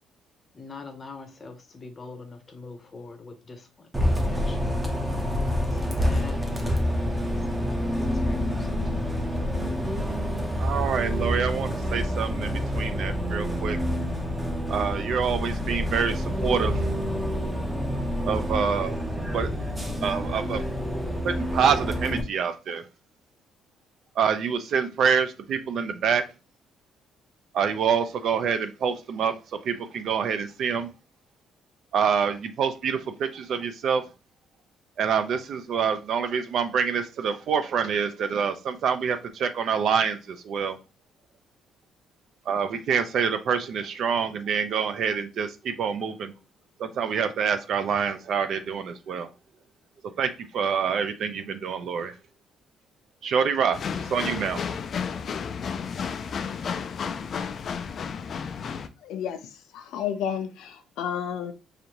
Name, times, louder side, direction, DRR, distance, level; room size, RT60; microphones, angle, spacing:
voice 1, 0.5-4.6 5.6-9.1, left 4 dB, 20° left, 0.7 m, -44 dB
Bus, 3.9-22.2, equal, 10° right, 0.6 m, -27 dB
voice 2, 10.6-13.8 14.7-16.8 18.3-19.0 19.3-19.5 20.0-20.6 21.2-22.8 24.2-26.2 27.5-29.3 29.6-30.9 31.9-34.0 35.0-40.8 42.5-46.3 46.8-49.3 50.2-52.1 53.2-53.8 54.1-54.6, right 6 dB, 50° right, 0.5 m, -26 dB
sound 1, 53.7-58.9, left 6 dB, 35° left, 0.3 m, -32 dB
voice 3, 59.0-59.4 59.7-61.5, left 8 dB, 80° left, 0.6 m, -31 dB
4.9 x 2.6 x 2.9 m
cardioid pair, 170°, 0 cm